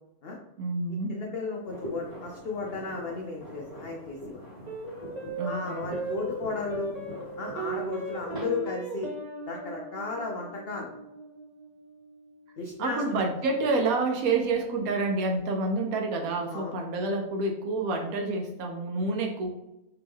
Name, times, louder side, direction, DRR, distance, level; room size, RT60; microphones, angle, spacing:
voice 1, 0.6-1.2 5.4-5.9 12.8-19.5, right 3 dB, 70° right, 2 dB, 1.0 m, -28 dB
voice 2, 1.1-4.4 5.4-6.9 7.4-9.1 9.5-10.9 12.6-13.0 16.5-16.8, left 3 dB, 75° left, 0 dB, 0.5 m, -34 dB
sound 1, 1.6-8.5, equal, 15° right, 1.3 m, -43 dB
sound 2, 4.7-13.3, right 3 dB, 55° right, 0.4 m, -38 dB
3.3 x 2.9 x 3.5 m, 0.91 s
omnidirectional pair, 1.6 m